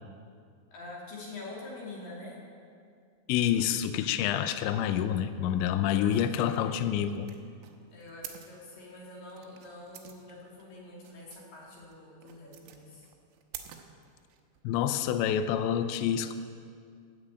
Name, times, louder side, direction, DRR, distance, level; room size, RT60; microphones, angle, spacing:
voice 1, 0.7-2.4 5.9-6.8 7.9-13.1, left 2 dB, 50° left, -4 dB, 3.9 m, -45 dB
voice 2, 3.3-7.3 14.6-16.3, left 10 dB, 80° left, 10 dB, 2.8 m, -28 dB
sound 1, 6.5-14.6, right 10 dB, 90° right, 3.6 m, -49 dB
14.0 x 8.3 x 8.7 m, 2.2 s
omnidirectional pair, 5.6 m